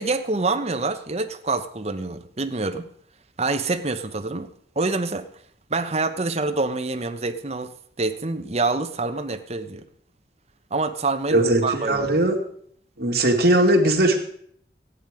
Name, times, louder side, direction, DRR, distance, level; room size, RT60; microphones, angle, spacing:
voice 1, 0.0-2.9 3.4-5.3 5.7-9.8 10.7-12.1, right 3 dB, 35° right, 7 dB, 1.0 m, -26 dB
voice 2, 11.3-12.4 13.0-14.2, right 1 dB, 60° right, 0 dB, 2.4 m, -19 dB
15.0 x 10.0 x 5.1 m, 0.63 s
head